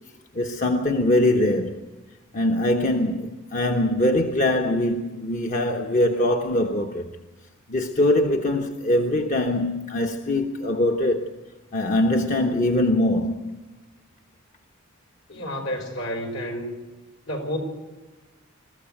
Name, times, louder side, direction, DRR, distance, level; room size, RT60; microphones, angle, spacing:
voice 1, 0.3-1.8 2.3-7.1 7.7-11.3 11.7-13.6, left 1 dB, 40° left, 1.0 m, -22 dB
voice 2, 15.3-16.8 17.3-17.6, equal, 70° left, 4.8 m, -30 dB
22.0 x 14.0 x 9.0 m
head